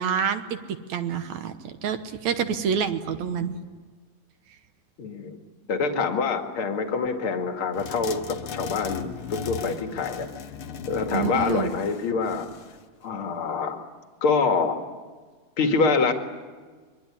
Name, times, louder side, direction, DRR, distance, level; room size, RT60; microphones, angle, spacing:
voice 1, 0.0-3.6 11.1-11.7, right 7 dB, 60° right, 9 dB, 2.1 m, -27 dB
voice 2, 5.0-5.4 5.7-10.3 10.9-12.5 13.0-13.8 14.2-14.8 15.6-16.1, left 4 dB, 45° left, 5 dB, 2.4 m, -25 dB
sound 1, 7.8-12.8, left 7 dB, 65° left, 1.3 m, -37 dB
25.5 x 23.0 x 9.8 m, 1.5 s
omnidirectional pair, 4.2 m